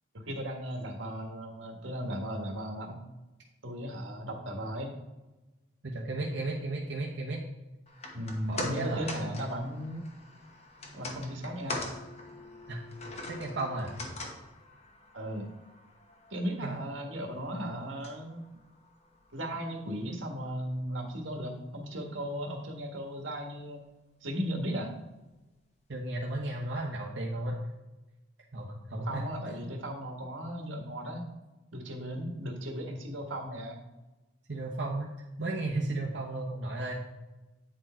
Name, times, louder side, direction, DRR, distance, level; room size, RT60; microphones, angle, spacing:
voice 1, 0.1-3.0 3.6-5.0 8.1-10.0 10.9-11.9 15.1-15.5 16.3-18.4 19.3-23.8 24.2-24.9 28.9-31.3 31.7-33.8, equal, 90° right, 2 dB, 1.6 m, -36 dB
voice 2, 5.8-7.4 8.5-9.3 12.7-12.8 13.3-13.9 16.6-16.8 25.9-27.6 28.5-29.7 34.5-35.1 35.4-37.0, right 2 dB, 65° right, -3 dB, 1.0 m, -34 dB
sound 1, 7.9-20.2 20.6-20.7, left 2 dB, 35° left, 1.0 m, -43 dB
8.8 x 4.6 x 4.4 m, 1.1 s
head